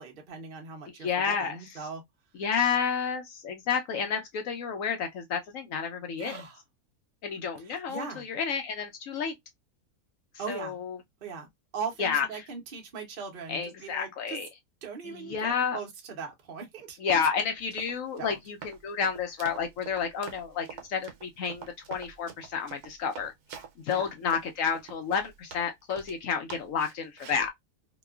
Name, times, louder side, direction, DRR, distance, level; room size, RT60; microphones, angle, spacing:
voice 1, 0.0-2.0 6.2-6.6 7.6-8.2 10.4-10.8 11.2-11.5 11.7-14.4 14.8-17.0 18.2-18.4 23.9-24.1, right 5 dB, 45° right, 0.8 m, -39 dB
voice 2, 1.0-1.8 2.4-6.4 7.2-9.3 10.5-11.0 12.0-12.2 13.5-14.5 15.0-15.8 17.0-23.3 23.8-27.5, left 6 dB, 70° left, 0.8 m, -30 dB
Run, 17.6-26.2 26.5-27.5, right 7 dB, 80° right, 1.2 m, -46 dB
2.8 x 2.3 x 2.2 m
omnidirectional pair, 1.7 m